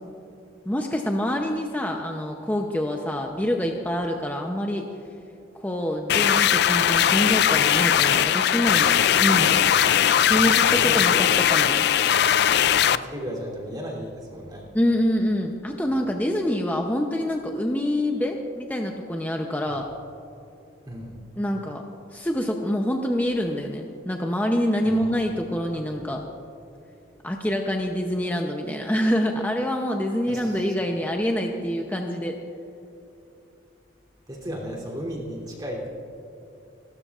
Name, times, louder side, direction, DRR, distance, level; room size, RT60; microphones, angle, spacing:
voice 1, 0.7-4.9 5.6-8.9 9.2-9.6 10.2-11.9 14.7-19.9 21.4-21.8 22.1-26.2 27.2-32.4, equal, 10° left, 2 dB, 0.7 m, -26 dB
sound 1, 6.1-13.0, left 9 dB, 55° left, 0.3 m, -19 dB
voice 2, 9.2-9.9 10.4-11.3 12.8-14.7 16.0-16.1 19.7-19.8 20.9-21.2 24.8-25.2 30.3-30.7 34.3-35.9, equal, 20° right, -2 dB, 3.1 m, -36 dB
29.5 x 12.5 x 2.5 m, 2.8 s
head